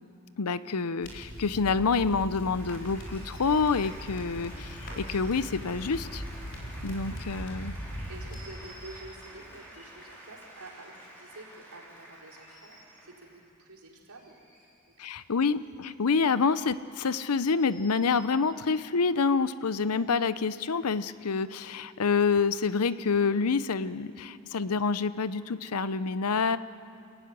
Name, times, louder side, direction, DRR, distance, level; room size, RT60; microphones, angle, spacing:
voice 1, 0.4-6.2 6.8-7.8 15.0-26.6, left 5 dB, 90° left, 15 dB, 0.7 m, -27 dB
sound 1, 1.0-8.4, equal, 55° left, 4.4 m, -40 dB
Applause, 1.9-13.5, right 1 dB, 10° left, 4.7 m, -49 dB
sound 2, 2.3-2.4 2.7-4.2 4.7-5.4 5.7-7.3 8.3-9.2 9.6-9.9 10.9-11.6 12.0-13.0 13.9-15.1 15.4-16.3 16.7-16.8 17.4-18.2 18.9-19.0 19.7-20.1, right 1 dB, 35° left, 7.5 m, -57 dB
voice 2, 7.5-14.7 15.0-15.1 19.4-19.6, right 2 dB, 90° right, -3 dB, 4.8 m, -49 dB
29.5 x 15.0 x 9.6 m, 2.6 s
head